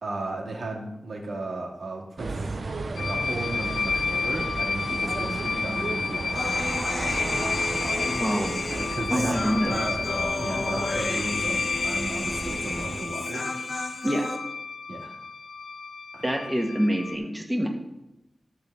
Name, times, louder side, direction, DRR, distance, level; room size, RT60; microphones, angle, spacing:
voice 1, 0.0-2.5 3.0-6.5 7.8-8.2 8.8-10.1 10.4-13.5 13.9-14.1 14.9-15.2 16.1-16.2, right 2 dB, 80° right, -1 dB, 2.2 m, -35 dB
sound 1, 2.2-13.0, right 3 dB, 55° right, 0.7 m, -34 dB
sound 2, 3.0-17.2, left 4 dB, 80° left, 0.5 m, -31 dB
Human voice, 6.4-14.4, left 2 dB, 65° left, 1.5 m, -33 dB
voice 2, 7.9-8.7 9.1-9.7 14.0-14.2 16.2-17.7, equal, 10° right, 1 dB, 1.5 m, -26 dB
12.5 x 4.1 x 6.9 m, 0.92 s
wide cardioid pair, 105°, 0 cm